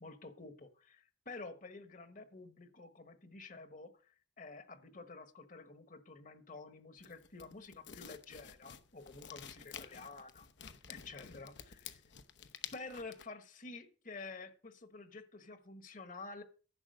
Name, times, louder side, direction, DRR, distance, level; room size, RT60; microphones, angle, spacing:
voice 1, 0.0-10.5 10.9-12.0 12.7-16.4, left 3 dB, 50° left, 10 dB, 1.2 m, -50 dB
sound 1, 7.0-13.2, left 8 dB, 80° left, 0.9 m, -51 dB
11.0 x 6.9 x 6.7 m, 0.39 s
head